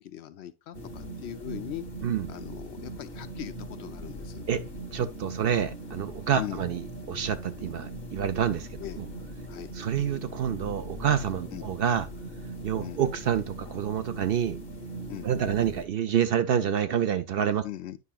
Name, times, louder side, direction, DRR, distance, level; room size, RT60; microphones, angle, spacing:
voice 1, 0.0-1.8 2.3-4.4 6.4-6.6 8.8-9.0 9.5-9.7 11.5-11.7 12.8-13.0 15.1-15.3 17.6-18.0, left 12 dB, 70° left, 0.8 m, -39 dB
sound 1, 0.7-15.9, right 1 dB, 50° left, 1.5 m, -40 dB
voice 2, 4.9-9.1 9.7-12.1 12.6-14.6 15.2-17.6, right 9 dB, 60° right, 0.6 m, -28 dB
9.5 x 5.6 x 2.3 m
omnidirectional pair, 1.2 m